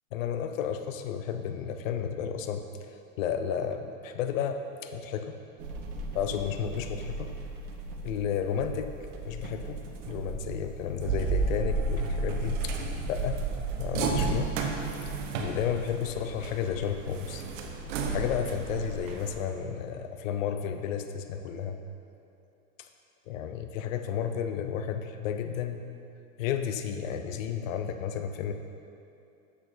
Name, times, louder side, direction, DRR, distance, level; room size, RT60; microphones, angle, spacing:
voice 1, 0.1-2.6 3.2-5.3 6.1-7.3 8.0-8.9 9.2-9.8 10.1-13.4 13.8-14.5 15.1-17.4 18.1-21.8 23.3-25.8 26.4-28.5, left 8 dB, 75° left, 7 dB, 0.7 m, -32 dB
sound 1, 5.6-19.4, right 3 dB, 60° right, 1.1 m, -33 dB
7.2 x 6.8 x 4.4 m, 2.7 s
hypercardioid pair, 115°, 41 cm